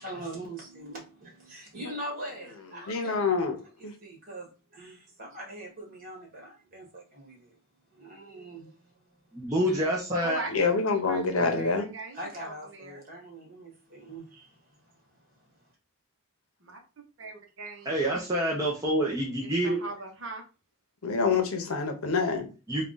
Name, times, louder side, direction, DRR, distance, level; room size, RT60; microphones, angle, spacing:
voice 1, 0.0-3.3 3.8-7.6 7.9-9.8 12.1-15.7, right 1 dB, 40° right, 1.6 m, -43 dB
voice 2, 2.9-3.6 3.8-3.9 10.5-11.9 21.0-22.5, left 4 dB, 70° left, 0.7 m, -26 dB
voice 3, 9.3-10.4 11.4-11.6 17.9-19.8 22.7-22.9, right 1 dB, 15° right, 0.6 m, -27 dB
voice 4, 10.2-10.7 11.0-13.0 16.6-16.8 17.2-17.9 19.4-20.4, right 2 dB, 55° right, 0.9 m, -40 dB
3.5 x 2.3 x 3.8 m
head